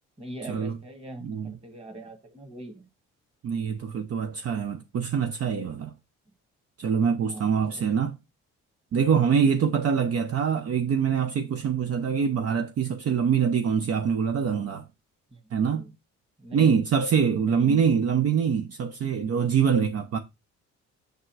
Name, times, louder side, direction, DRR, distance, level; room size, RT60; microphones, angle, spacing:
voice 1, 0.2-2.9 7.2-8.0 15.3-15.4 15.7-15.9 16.4-16.8 17.4-17.8, right 1 dB, 20° right, 1.9 m, -41 dB
voice 2, 1.2-1.5 3.4-5.9 6.8-8.2 8.9-14.9 15.5-15.9 16.5-20.2, right 7 dB, 55° right, 0.7 m, -24 dB
6.7 x 3.7 x 4.6 m
cardioid pair, 90°, 30 cm